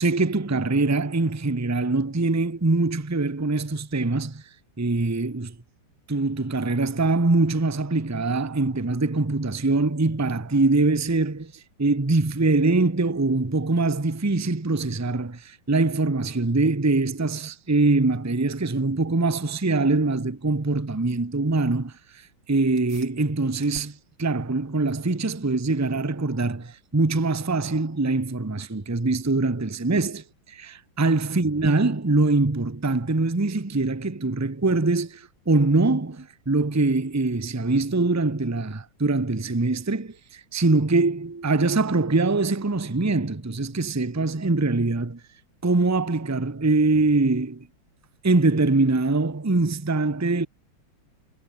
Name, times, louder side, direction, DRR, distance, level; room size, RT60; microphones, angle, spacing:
voice 1, 0.0-4.4 4.8-5.5 6.1-11.5 11.8-21.9 22.5-45.2 45.6-47.7 48.2-50.5, right 3 dB, 10° right, 0.8 m, -23 dB
sound 1, 22.8-32.7, right 2 dB, 55° right, 8.3 m, -56 dB
omnidirectional pair, 2.3 m